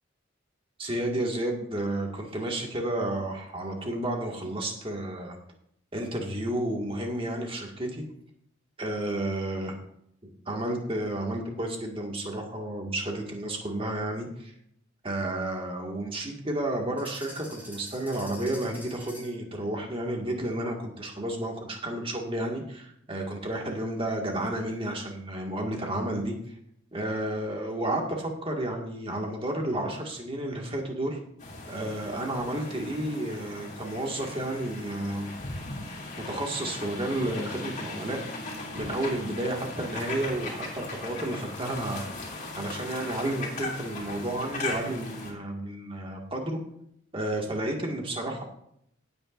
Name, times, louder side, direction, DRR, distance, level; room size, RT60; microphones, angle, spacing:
voice 1, 0.8-5.4 5.9-8.0 8.8-9.7 10.2-14.5 15.0-26.3 26.9-31.2 31.7-35.3 36.2-38.5 38.7-42.3 42.6-46.6 47.1-48.4, right 1 dB, 25° right, 1 dB, 1.9 m, -31 dB
sound 1, 17.0-19.5, equal, 10° right, 4.2 m, -46 dB
sound 2, 31.4-45.3, left 2 dB, 35° left, 3.3 m, -38 dB
17.0 x 8.8 x 2.6 m, 0.72 s
head